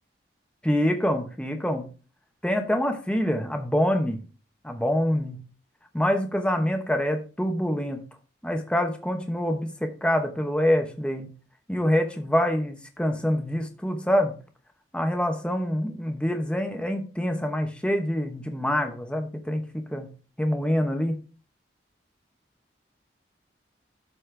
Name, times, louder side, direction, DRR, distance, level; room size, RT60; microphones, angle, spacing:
voice 1, 0.6-1.9 2.4-4.2 4.6-5.4 5.9-8.0 8.4-11.3 11.7-14.3 14.9-20.1 20.4-21.2, equal, 5° left, 4 dB, 0.9 m, -26 dB
12.5 x 4.2 x 3.3 m, 0.36 s
head